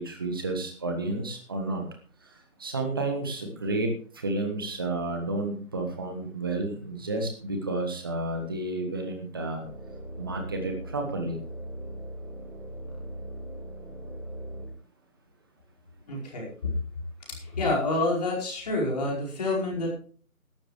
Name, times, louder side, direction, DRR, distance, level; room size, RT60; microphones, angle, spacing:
voice 1, 0.0-1.8 2.2-9.6 10.2-11.4, right 2 dB, 15° right, 4 dB, 1.3 m, -31 dB
sound 1, 9.6-14.8, right 1 dB, 75° right, 4.3 m, -39 dB
voice 2, 16.1-16.5 17.4-19.9, left 2 dB, 30° left, -4 dB, 5.0 m, -28 dB
16.5 x 12.5 x 3.2 m, 0.43 s
figure-of-eight pair, 160°, 44 cm